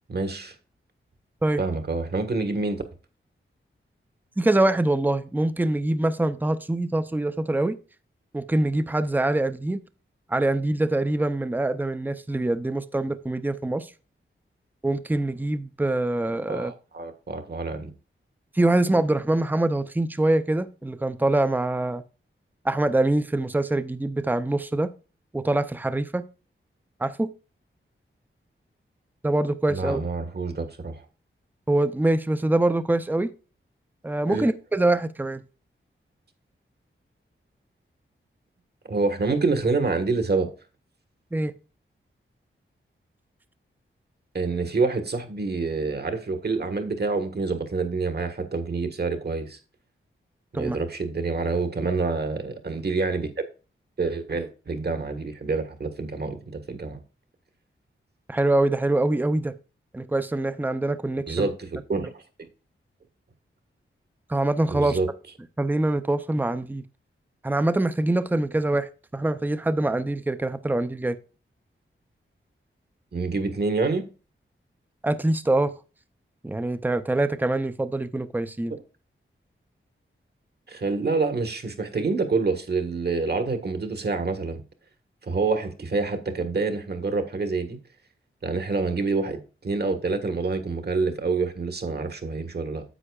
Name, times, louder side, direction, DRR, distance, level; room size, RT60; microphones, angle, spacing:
voice 1, 0.1-0.5 1.6-2.8 16.5-17.9 29.7-31.0 34.3-34.5 38.8-40.5 44.3-49.6 50.5-53.3 54.0-57.0 61.3-62.1 64.7-65.1 73.1-74.0 80.7-84.6 85.2-87.8 88.4-92.8, right 3 dB, 50° right, 1.5 m, -27 dB
voice 2, 4.4-7.8 8.3-9.8 10.3-13.9 14.8-16.7 18.5-22.0 22.6-24.9 25.3-26.2 27.0-27.3 29.2-30.0 31.7-33.3 34.0-35.4 41.3-41.5 50.5-50.8 58.3-59.5 59.9-61.5 64.3-65.0 65.6-66.8 67.4-71.2 75.0-75.7 76.4-78.7, right 2 dB, 10° right, 0.6 m, -24 dB
10.0 x 7.7 x 2.4 m
wide cardioid pair, 90°, 21 cm